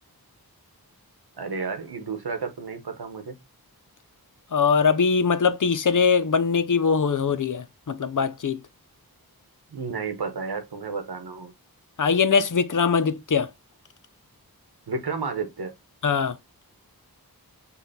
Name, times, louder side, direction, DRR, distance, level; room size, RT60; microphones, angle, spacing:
voice 1, 1.4-3.3 9.7-11.5 14.9-15.7, right 4 dB, 85° right, 1.0 m, -32 dB
voice 2, 4.5-8.6 12.0-13.5 16.0-16.4, left 5 dB, 55° left, 0.6 m, -22 dB
5.5 x 2.4 x 4.0 m
wide cardioid pair, 65°, 38 cm